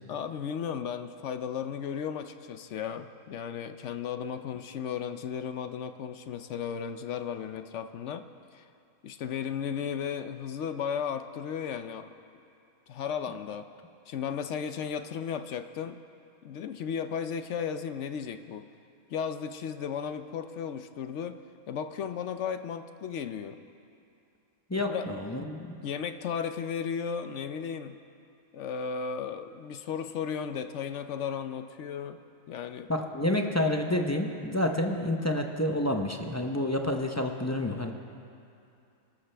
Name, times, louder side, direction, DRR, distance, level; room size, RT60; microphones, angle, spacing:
voice 1, 0.1-8.2 8.5-8.6 9.0-12.1 12.9-13.7 14.1-16.0 16.4-18.7 19.1-21.4 21.7-23.6 24.9-25.1 25.8-28.0 28.5-32.2 32.5-32.9, left 7 dB, 65° left, 9 dB, 0.8 m, -35 dB
voice 2, 24.7-25.8 32.9-37.9, left 1 dB, 20° left, 3 dB, 0.5 m, -29 dB
26.5 x 13.0 x 3.4 m, 2.6 s
omnidirectional pair, 1.5 m